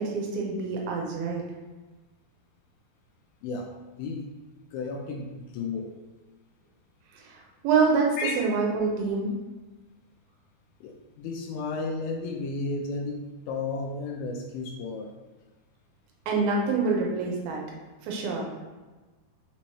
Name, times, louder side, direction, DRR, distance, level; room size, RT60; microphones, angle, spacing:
voice 1, 0.0-1.4 7.1-9.3 16.3-17.6 18.0-18.4, right 4 dB, 80° right, -1 dB, 2.4 m, -26 dB
voice 2, 4.0-4.3 4.7-5.9 8.2-8.3 10.8-13.2 13.5-15.1, left 3 dB, 85° left, 1 dB, 2.3 m, -33 dB
6.1 x 3.0 x 2.9 m, 1.2 s
omnidirectional pair, 4.7 m